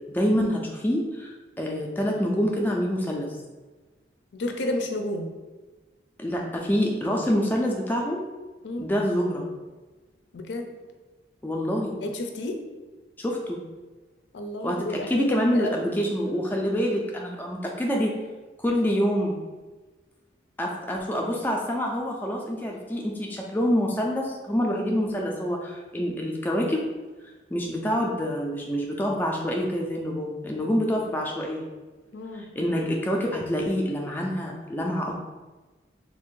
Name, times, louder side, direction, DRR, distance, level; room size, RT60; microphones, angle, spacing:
voice 1, 0.1-3.4 6.2-8.2 8.8-9.4 11.4-11.9 13.2-13.6 14.6-18.1 18.6-19.4 20.6-26.8 27.5-31.7 32.3-35.2, equal, 10° left, -1 dB, 0.3 m, -26 dB
voice 2, 4.3-5.3 8.6-8.9 10.3-10.7 12.0-12.6 14.3-15.9 32.1-32.5, left 1 dB, 80° left, 5 dB, 0.5 m, -31 dB
3.4 x 2.5 x 3.6 m, 1.2 s
head